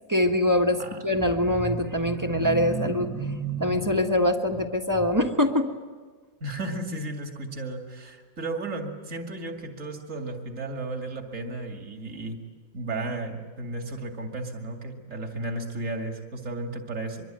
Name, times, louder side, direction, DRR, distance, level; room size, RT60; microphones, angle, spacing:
voice 1, 0.1-5.7, left 1 dB, 15° right, 3 dB, 1.7 m, -24 dB
voice 2, 6.4-12.5 12.7-17.3, right 2 dB, 65° right, 3 dB, 2.8 m, -34 dB
24.0 x 23.5 x 9.1 m, 1.5 s
omnidirectional pair, 1.4 m